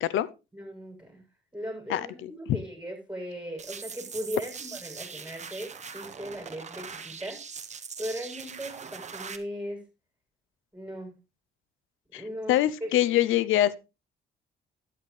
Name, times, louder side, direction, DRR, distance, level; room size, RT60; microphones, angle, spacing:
voice 1, 0.5-1.2 1.5-7.4 8.0-9.8 10.7-11.2 12.1-12.9, equal, 5° right, 7.9 m, -38 dB
voice 2, 1.9-2.3 12.1-12.2 12.5-13.8, left 13 dB, 85° left, 0.7 m, -24 dB
sound 1, 3.6-9.4, right 6 dB, 35° right, 1.4 m, -41 dB
12.0 x 10.5 x 3.4 m
cardioid pair, 90°, 20 cm